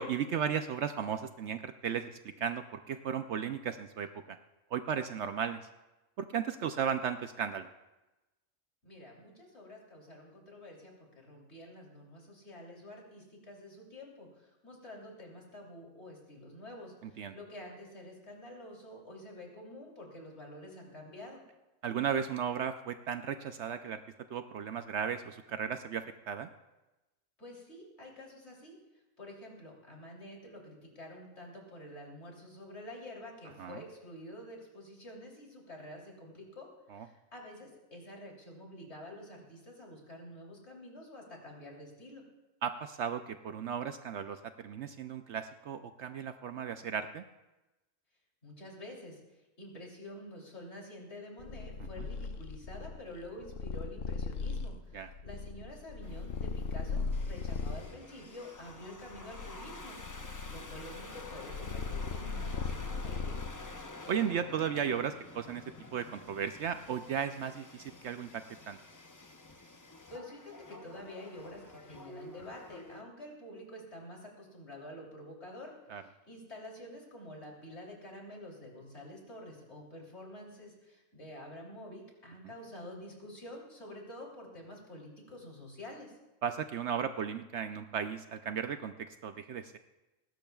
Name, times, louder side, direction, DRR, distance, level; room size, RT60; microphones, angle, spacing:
voice 1, 0.0-4.4 4.7-5.7 6.2-7.7 17.0-17.4 21.8-24.0 24.3-26.5 33.6-33.8 36.9-37.1 42.6-47.2 52.0-52.1 54.9-55.1 64.1-65.6 65.9-68.8 75.9-76.0 86.4-89.8, right 7 dB, 65° right, 9 dB, 0.8 m, -35 dB
voice 2, 8.8-21.4 27.4-28.7 29.2-42.2 48.4-49.2 49.6-63.4 70.1-86.1, left 1 dB, 50° left, -1 dB, 3.4 m, -48 dB
Purr, 51.4-57.9 58.6-63.8, left 4 dB, 75° left, 1.1 m, -38 dB
sound 1, 56.0-73.0, left 2 dB, 20° left, 0.5 m, -49 dB
19.5 x 17.0 x 2.3 m, 1.0 s
omnidirectional pair, 1.4 m